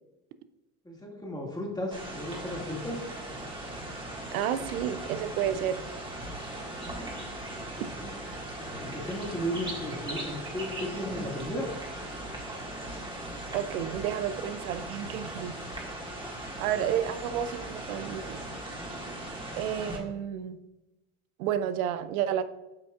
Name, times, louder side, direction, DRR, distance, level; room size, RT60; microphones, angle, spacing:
voice 1, 0.8-3.1 7.9-8.1 8.6-11.7, equal, 10° left, -2 dB, 2.0 m, -35 dB
sound 1, 1.9-20.0, right 1 dB, 10° right, 1.7 m, -39 dB
voice 2, 4.3-5.8 13.5-15.6 16.6-18.4 19.5-20.6 21.4-22.4, right 10 dB, 75° right, 12 dB, 0.5 m, -31 dB
7.9 x 5.8 x 2.4 m, 1.0 s
hypercardioid pair, 65°, 43 cm